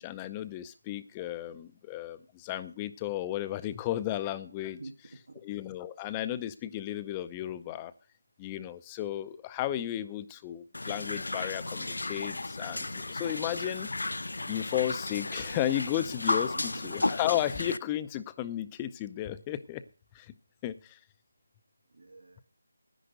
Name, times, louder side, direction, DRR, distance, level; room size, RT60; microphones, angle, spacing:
voice 1, 0.0-4.8 5.4-7.9 8.4-13.9 14.5-19.8 20.1-20.3 20.6-21.0, left 12 dB, 15° left, 13 dB, 0.6 m, -34 dB
voice 2, 4.8-5.4 16.5-16.9 21.9-22.4, right 3 dB, 80° right, 5 dB, 1.6 m, -47 dB
sound 1, 10.7-17.8, left 2 dB, 75° left, 0.6 m, -34 dB
10.0 x 10.0 x 6.5 m, 0.36 s
figure-of-eight pair, 165°, 0 cm